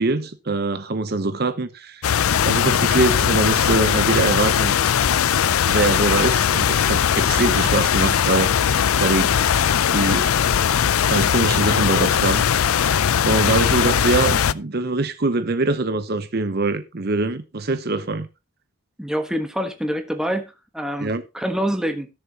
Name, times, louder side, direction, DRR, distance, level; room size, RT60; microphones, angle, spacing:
voice 1, 0.0-2.1 2.5-4.7 5.6-8.7 9.0-9.4 9.9-10.3 11.1-12.8 13.2-18.3 21.0-21.2, right 3 dB, 50° right, 0.8 m, -23 dB
sound 1, 2.0-14.5, left 8 dB, 85° left, 0.5 m, -19 dB
voice 2, 19.0-22.1, equal, 5° right, 1.2 m, -26 dB
17.0 x 7.0 x 2.9 m
head